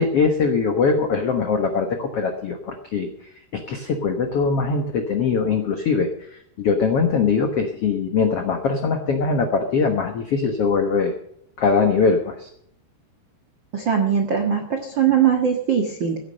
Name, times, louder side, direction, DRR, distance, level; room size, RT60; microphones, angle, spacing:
voice 1, 0.0-3.1 3.5-11.1 11.6-12.5, left 5 dB, 90° left, 5 dB, 1.3 m, -21 dB
voice 2, 13.7-16.2, right 8 dB, 70° right, 4 dB, 1.0 m, -20 dB
16.0 x 8.9 x 6.5 m, 0.69 s
omnidirectional pair, 4.8 m